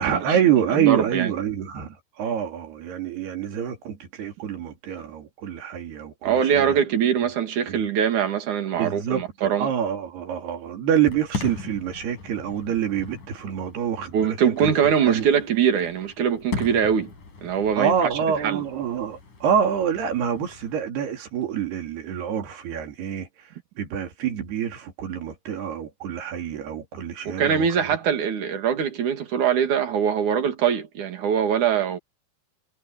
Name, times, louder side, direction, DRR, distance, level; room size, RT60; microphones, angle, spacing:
voice 1, 0.0-6.8 7.7-7.9 8.8-14.7 15.0-15.3 17.8-23.3 23.8-28.0, right 8 dB, 80° right, 5.1 m, -26 dB
voice 2, 0.7-1.3 6.2-9.7 14.1-17.1 17.4-18.1 18.4-18.6 27.2-32.0, right 8 dB, 55° right, 3.4 m, -22 dB
Fireworks, 11.0-20.8, left 3 dB, 50° left, 7.3 m, -39 dB
omnidirectional pair, 4.6 m